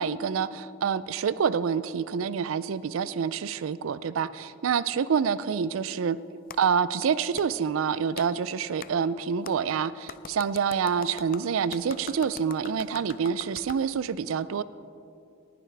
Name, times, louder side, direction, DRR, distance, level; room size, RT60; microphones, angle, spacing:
voice 1, 0.0-6.2 6.6-14.6, right 6 dB, 80° right, 17 dB, 0.4 m, -27 dB
Clapping, 6.5-6.6 7.4-7.5 8.2-8.3 8.8-8.9 9.4-9.6 10.1-13.8, left 8 dB, 45° left, 0.4 m, -43 dB
18.5 x 11.0 x 3.4 m, 2.5 s
head